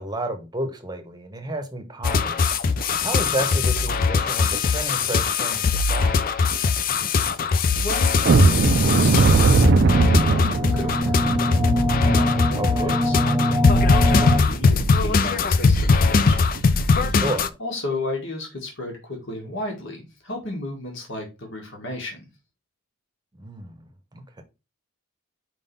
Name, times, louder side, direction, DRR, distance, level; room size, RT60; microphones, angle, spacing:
voice 1, 0.0-2.5 3.0-6.3 12.6-13.0 17.2-17.5 23.4-23.8 24.1-24.4, right 1 dB, 20° right, 1.0 m, -31 dB
sound 1, 2.0-17.5, left 4 dB, 40° left, 0.4 m, -21 dB
voice 2, 7.8-11.3 12.0-13.4 13.7-22.2, left 2 dB, 60° left, 1.9 m, -34 dB
sound 2, 8.2-15.0 15.3-15.5 15.9-16.1 16.5-16.7, right 4 dB, 50° right, 0.4 m, -21 dB
sound 3, 8.9-14.4, left 1 dB, ahead, 0.6 m, -24 dB
4.9 x 3.8 x 5.3 m
head